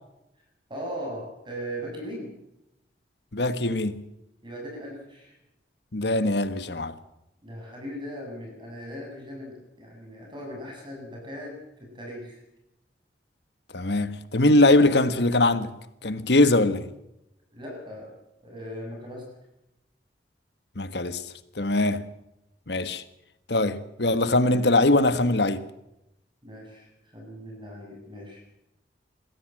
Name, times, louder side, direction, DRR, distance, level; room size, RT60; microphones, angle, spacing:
voice 1, 0.7-2.3 4.4-5.4 7.4-12.4 17.5-18.1 18.4-19.3 26.4-28.4, equal, 25° right, 7.7 m, -38 dB
voice 2, 3.3-4.0 5.9-6.9 13.7-15.7 16.0-16.9 20.8-21.2 21.6-22.1 22.7-23.0 23.5-25.6, left 2 dB, 65° left, 1.5 m, -22 dB
22.5 x 15.5 x 7.7 m
head